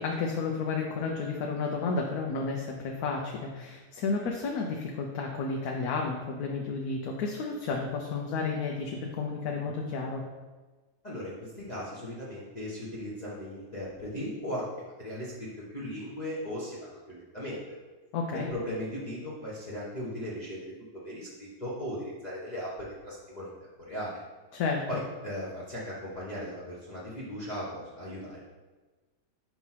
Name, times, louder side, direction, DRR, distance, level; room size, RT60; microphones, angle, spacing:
voice 1, 0.0-10.2 18.1-18.5 24.5-24.8, left 4 dB, 80° left, 0 dB, 1.1 m, -32 dB
voice 2, 11.0-16.8 17.1-17.6 18.3-20.6 21.0-23.5 23.8-24.2 24.9-28.4, equal, 35° left, -8 dB, 0.9 m, -37 dB
5.7 x 3.0 x 5.6 m, 1.3 s
omnidirectional pair, 1.6 m